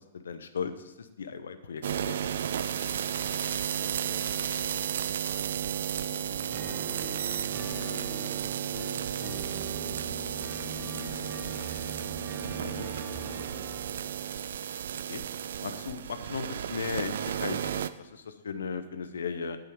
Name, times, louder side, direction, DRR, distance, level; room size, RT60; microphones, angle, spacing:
voice 1, 0.0-2.4 12.6-12.9 15.1-15.2 15.6-19.6, left 6 dB, 70° left, 10 dB, 0.9 m, -37 dB
sound 1, 1.8-17.9, right 9 dB, 60° right, 0.4 m, -33 dB
voice 2, 3.7-7.2 8.1-10.0 10.7-12.2 12.8-14.3, left 1 dB, 20° left, 0 dB, 1.9 m, -53 dB
sound 2, 6.3-13.8, equal, 15° right, 3.8 m, -43 dB
9.0 x 8.5 x 4.7 m, 1.0 s
figure-of-eight pair, 110°, 0 cm